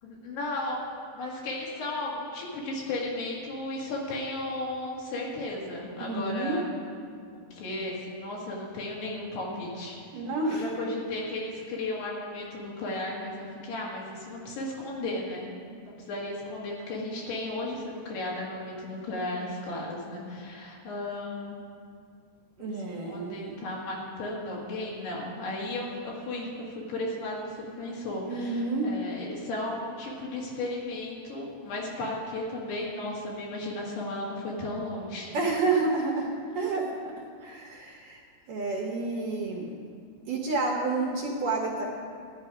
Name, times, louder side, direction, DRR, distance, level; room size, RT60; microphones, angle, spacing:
voice 1, 0.0-6.7 7.5-10.0 10.5-15.5 15.8-21.6 22.6-22.8 23.1-26.5 26.8-35.4, left 2 dB, 70° left, -4 dB, 4.1 m, -35 dB
voice 2, 6.0-6.6 10.1-10.6 22.6-23.5 28.3-28.9 35.3-36.3 36.5-36.9 37.4-38.2 38.5-39.8 40.3-41.8, right 3 dB, 65° right, -2 dB, 2.3 m, -29 dB
13.0 x 11.0 x 4.9 m, 2.2 s
omnidirectional pair, 4.9 m